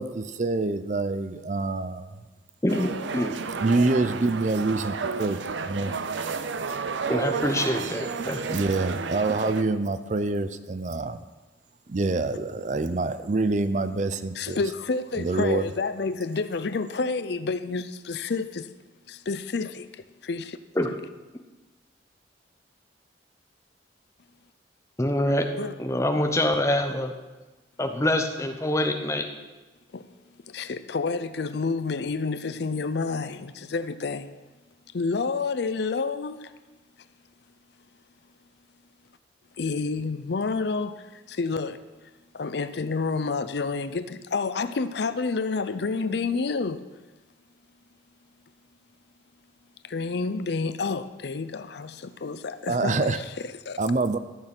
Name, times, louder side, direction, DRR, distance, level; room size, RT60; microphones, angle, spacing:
voice 1, 0.0-2.1 3.6-5.4 5.7-5.9 8.2-11.2 11.9-14.6 15.2-15.6 52.7-53.2 53.8-54.2, right 3 dB, 40° right, 0.5 m, -26 dB
voice 2, 2.6-3.3 7.1-8.6 20.8-20.9 25.0-25.5 25.8-27.1 27.8-29.3, left 1 dB, 15° left, 0.9 m, -25 dB
sound 1, 2.7-9.6, right 5 dB, 80° right, 0.6 m, -32 dB
voice 3, 14.3-18.7 19.1-19.9 20.2-20.6 25.6-25.7 29.9-30.1 30.5-34.4 34.9-36.5 39.6-41.8 42.3-46.8 49.8-53.8, left 4 dB, 65° left, 0.5 m, -29 dB
14.0 x 6.6 x 6.0 m
head